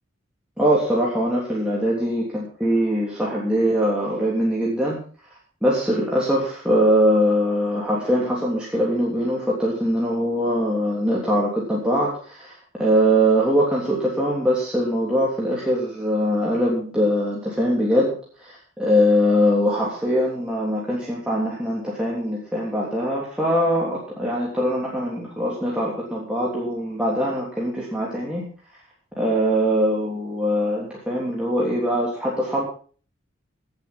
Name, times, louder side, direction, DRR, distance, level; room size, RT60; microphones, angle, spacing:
voice 1, 0.6-5.0 5.6-28.4 29.2-32.6, equal, 5° right, -6 dB, 3.3 m, -22 dB
17.0 x 8.3 x 5.6 m, 0.42 s
head